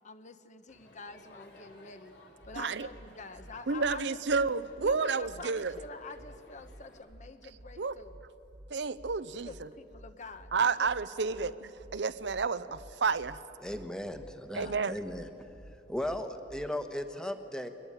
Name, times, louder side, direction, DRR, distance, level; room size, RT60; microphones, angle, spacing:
voice 1, 0.0-2.1 2.4-4.2 4.8-8.2 9.5-10.9 11.4-11.5 14.6-15.0, left 3 dB, 40° left, 9 dB, 1.1 m, -47 dB
Crowd, 0.7-7.0, left 1 dB, 65° left, 3.3 m, -57 dB
sound 1, 2.4-16.9, equal, 55° right, 1.8 m, -53 dB
voice 2, 2.6-2.9 3.7-5.8 7.8-8.0 8.7-9.7 10.5-13.4 14.5-15.0, right 4 dB, 70° right, 14 dB, 0.7 m, -30 dB
voice 3, 13.6-15.5 15.9-17.7, left 1 dB, 5° left, 8 dB, 1.3 m, -37 dB
23.0 x 21.0 x 8.9 m, 2.8 s
head